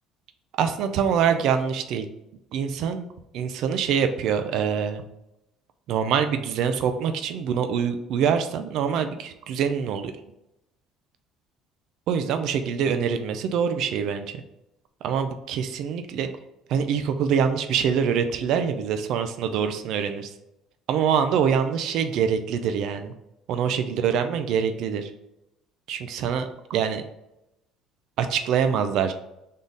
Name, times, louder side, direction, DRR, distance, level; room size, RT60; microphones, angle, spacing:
voice 1, 0.6-2.1 2.5-3.1 3.3-5.0 5.9-10.1 12.1-14.4 15.0-16.3 16.7-20.3 20.9-23.1 23.5-25.1 25.9-27.0 28.2-29.1, right 7 dB, 65° right, 8 dB, 0.4 m, -25 dB
4.0 x 3.6 x 3.5 m, 0.88 s
cardioid pair, 125°, 0 cm